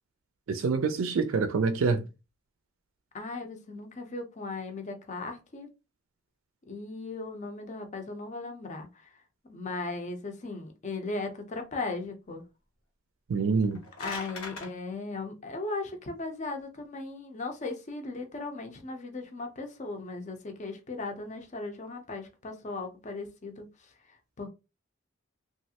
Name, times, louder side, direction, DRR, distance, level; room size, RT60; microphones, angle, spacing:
voice 1, 0.5-2.1 13.3-13.8, right 4 dB, 70° right, 0.4 m, -26 dB
voice 2, 3.1-5.7 6.7-9.1 9.4-12.4 14.0-23.7 24.4-24.5, left 3 dB, 35° left, 0.6 m, -37 dB
sound 1, 13.5-14.7, left 4 dB, 85° left, 1.0 m, -39 dB
3.1 x 2.4 x 2.8 m
head